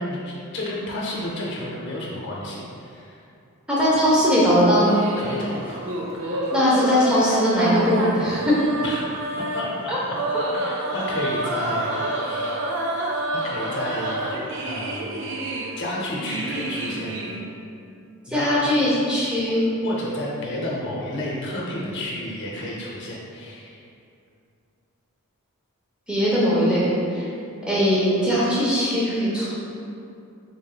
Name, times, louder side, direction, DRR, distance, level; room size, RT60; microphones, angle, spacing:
voice 1, 0.0-3.2 5.2-5.8 8.8-9.1 9.4-10.1 10.5-12.6 13.3-15.2 15.8-17.3 18.3-18.6 19.8-23.9, left 1 dB, 55° left, -5 dB, 0.7 m, -31 dB
voice 2, 3.7-5.0 6.3-8.6 9.9-10.0 18.3-19.7 26.1-27.3 27.7-29.5, equal, 5° right, -8 dB, 0.7 m, -20 dB
sound 1, 4.5-17.4, right 1 dB, 55° right, 0.4 m, -29 dB
3.9 x 3.5 x 2.2 m, 2.6 s
head